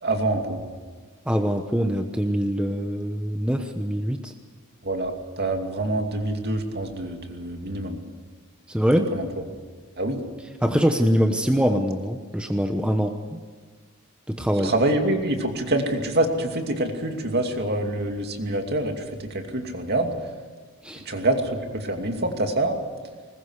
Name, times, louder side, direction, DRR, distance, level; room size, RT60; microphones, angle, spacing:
voice 1, 0.0-0.6 4.8-8.0 8.9-9.3 10.0-10.2 14.6-18.9 19.2-20.1 21.1-22.8, right 1 dB, 50° right, 4 dB, 2.6 m, -26 dB
voice 2, 1.3-4.3 8.7-9.1 10.6-13.4 14.3-14.7 20.8-21.0, equal, 5° right, 5 dB, 1.0 m, -23 dB
21.0 x 20.0 x 8.2 m, 1.5 s
head